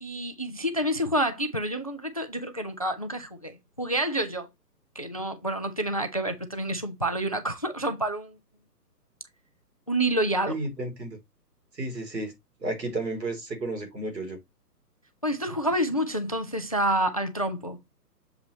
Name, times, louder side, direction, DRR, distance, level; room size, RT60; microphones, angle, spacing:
voice 1, 0.0-4.5 5.0-8.4 9.9-10.5 15.2-17.8, right 1 dB, 25° left, 0.4 m, -28 dB
voice 2, 10.5-11.2 11.7-12.3 12.6-14.4, right 2 dB, 80° right, 3.5 m, -32 dB
6.9 x 5.4 x 3.1 m
figure-of-eight pair, 135°, 49 cm